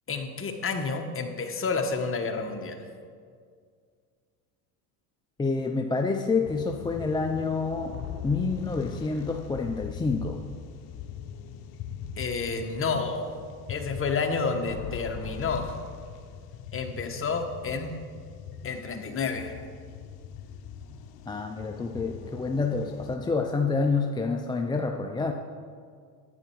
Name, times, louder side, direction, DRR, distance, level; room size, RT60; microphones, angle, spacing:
voice 1, 0.1-2.8 12.2-13.3 13.7-15.8 16.7-17.9 18.6-19.5, left 4 dB, 25° left, 4 dB, 1.3 m, -30 dB
voice 2, 5.4-7.9 8.2-10.4 21.3-25.3, left 4 dB, 10° left, 3 dB, 0.4 m, -28 dB
sound 1, 6.4-23.2, left 8 dB, 50° left, 0.9 m, -41 dB
10.5 x 9.1 x 4.7 m, 2.1 s
supercardioid pair, 95°, 46 cm